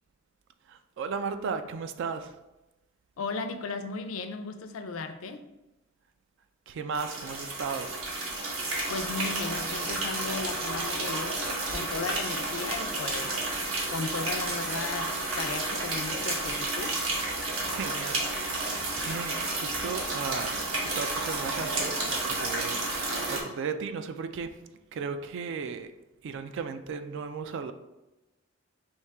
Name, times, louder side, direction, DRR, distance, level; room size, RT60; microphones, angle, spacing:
voice 1, 0.6-2.4 6.7-7.9 17.7-18.7 19.0-24.6 24.9-25.9 26.2-27.7, right 5 dB, 60° right, 9 dB, 0.3 m, -36 dB
voice 2, 3.2-5.4 8.9-13.6 13.9-17.0, left 4 dB, 75° left, 7 dB, 0.4 m, -36 dB
sound 1, 6.9-23.4, right 2 dB, 80° right, 1.0 m, -31 dB
4.6 x 2.7 x 3.3 m, 0.99 s
head